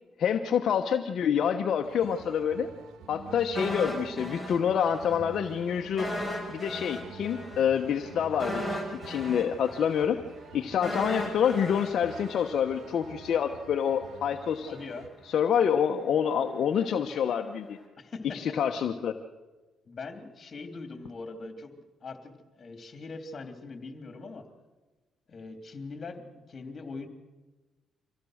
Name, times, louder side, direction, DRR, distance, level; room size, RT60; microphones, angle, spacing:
voice 1, 0.2-2.7 3.1-6.1 6.5-8.6 9.0-10.2 10.5-14.8 15.3-17.8 18.3-19.1, left 8 dB, 65° left, 4 dB, 1.1 m, -27 dB
sound 1, 1.8-15.1, right 6 dB, 80° right, 1.8 m, -48 dB
sound 2, 3.6-5.2 5.5-5.6 6.0-13.1 13.4-13.5, equal, 10° right, 6.4 m, -36 dB
voice 2, 14.7-15.1 18.0-18.4 19.9-21.7 22.0-24.5 25.3-27.1, left 3 dB, 40° left, 7 dB, 3.0 m, -41 dB
25.0 x 16.5 x 6.5 m, 1.2 s
cardioid pair, 90°, 0 cm